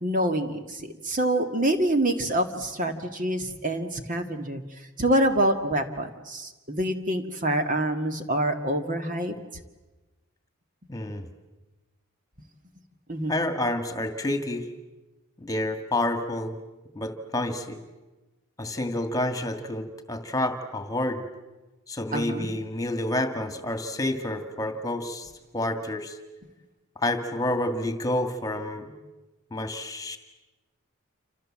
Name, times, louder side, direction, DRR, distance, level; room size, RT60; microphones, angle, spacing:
voice 1, 0.0-4.6 5.0-9.3 13.1-13.3 22.1-22.5, right 1 dB, 35° right, 6 dB, 1.9 m, -26 dB
voice 2, 10.9-11.3 13.3-14.7 15.4-16.6 17.0-17.8 18.6-21.3 21.9-26.2 27.0-29.0 29.5-30.2, left 1 dB, 15° left, 7 dB, 2.1 m, -29 dB
28.5 x 27.0 x 7.5 m, 1.1 s
head